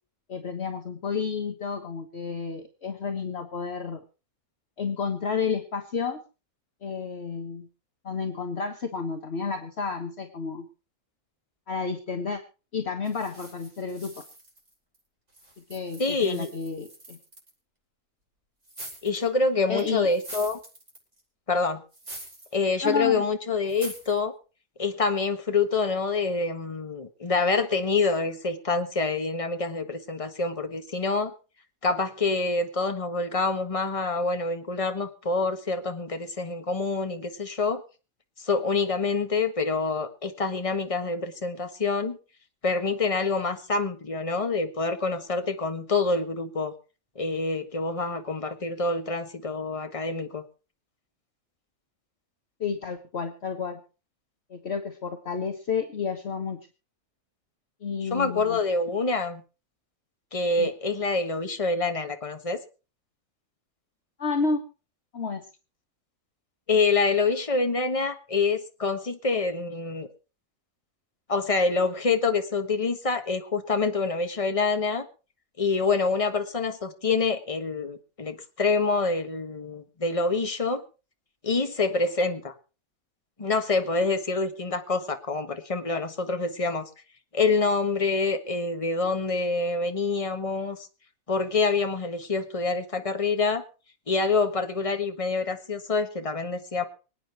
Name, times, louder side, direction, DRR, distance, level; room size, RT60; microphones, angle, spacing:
voice 1, 0.3-4.0 4.8-6.2 6.8-7.7 8.0-10.7 11.7-12.4 12.7-14.2 15.7-17.2 19.7-20.1 22.8-23.3 52.6-53.8 54.5-56.6 57.8-58.6 60.6-60.7 64.2-64.6 65.1-65.5, left 5 dB, 50° left, 5 dB, 1.6 m, -31 dB
sound 1, 13.0-15.0 15.3-17.5 18.6-19.3 19.8-21.2 21.9-22.5 22.9-23.0 23.7-24.2, right 1 dB, 55° right, 6.8 m, -44 dB
voice 2, 16.0-16.5 19.0-20.6 21.5-21.8 22.5-24.3 24.8-31.3 31.8-37.8 38.4-42.2 42.6-46.7 47.1-50.4 58.0-59.4 60.3-62.6 66.7-70.1 71.3-75.1 75.6-80.8 81.4-82.5 83.4-86.9 87.3-90.8 91.3-93.6 94.1-96.8, left 4 dB, 25° left, 7 dB, 1.6 m, -26 dB
25.0 x 9.1 x 4.5 m, 0.34 s
omnidirectional pair, 1.5 m